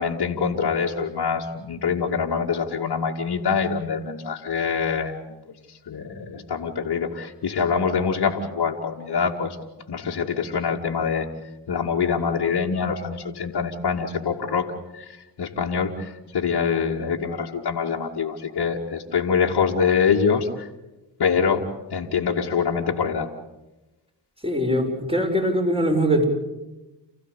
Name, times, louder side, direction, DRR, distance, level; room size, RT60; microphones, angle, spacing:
voice 1, 0.0-5.4 5.7-9.6 9.9-11.3 11.7-20.7 21.2-23.3, left 6 dB, 55° left, -2 dB, 2.4 m, -25 dB
voice 2, 24.4-26.2, equal, 10° right, 2 dB, 7.0 m, -22 dB
29.5 x 15.0 x 8.4 m, 1.0 s
hypercardioid pair, 40°, 45 cm